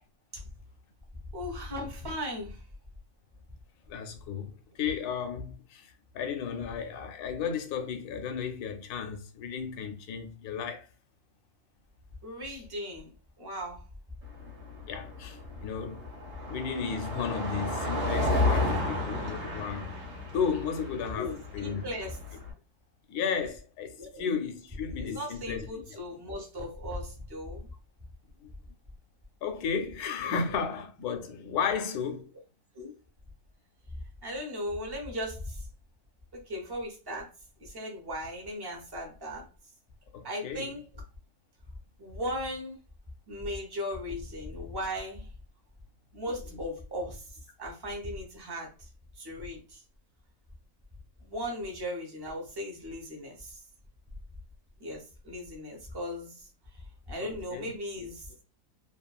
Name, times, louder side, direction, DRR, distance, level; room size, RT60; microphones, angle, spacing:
voice 1, 1.3-2.6 12.2-13.1 13.4-13.8 18.9-19.0 21.2-22.4 24.0-24.2 25.0-27.7 32.7-32.9 34.2-35.7 36.3-37.3 37.6-39.5 40.2-41.0 42.0-42.8 43.3-45.3 46.1-48.7 49.2-49.8 51.2-53.6 54.8-58.3, equal, 30° right, 0.4 m, -37 dB
voice 2, 3.9-10.9 12.5-12.6 14.9-16.1 16.5-19.9 20.3-21.8 23.1-25.6 28.4-28.5 29.4-32.3 40.1-40.7 57.2-57.7, left 6 dB, 80° left, 1.1 m, -34 dB
Car passing by, 14.2-22.5, left 2 dB, 55° right, 1.4 m, -32 dB
3.0 x 2.4 x 2.2 m
omnidirectional pair, 1.6 m